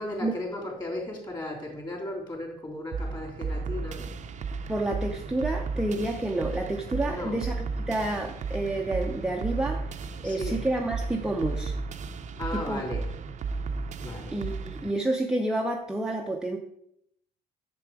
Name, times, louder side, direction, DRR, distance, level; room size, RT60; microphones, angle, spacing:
voice 1, 0.0-4.1 7.1-7.4 10.1-10.6 12.4-13.1 14.0-14.4, left 1 dB, 25° left, -1 dB, 3.3 m, -36 dB
sound 1, 2.9-14.9, right 4 dB, 45° right, 0.6 m, -34 dB
voice 2, 4.7-9.8 10.2-11.7 12.5-12.8 14.3-16.6, right 1 dB, 5° right, 1 dB, 0.7 m, -29 dB
7.4 x 6.8 x 4.7 m, 0.75 s
cardioid pair, 110°, 17 cm